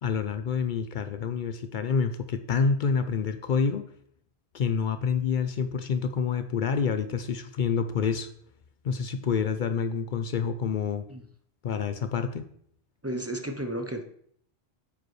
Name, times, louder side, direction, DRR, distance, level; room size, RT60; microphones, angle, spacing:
voice 1, 0.0-3.8 4.5-8.3 8.8-11.0 11.6-12.5, left 6 dB, 60° left, 9 dB, 0.6 m, -27 dB
voice 2, 13.0-14.1, right 1 dB, 20° right, 5 dB, 0.5 m, -33 dB
8.7 x 5.1 x 3.2 m, 0.64 s
omnidirectional pair, 1.1 m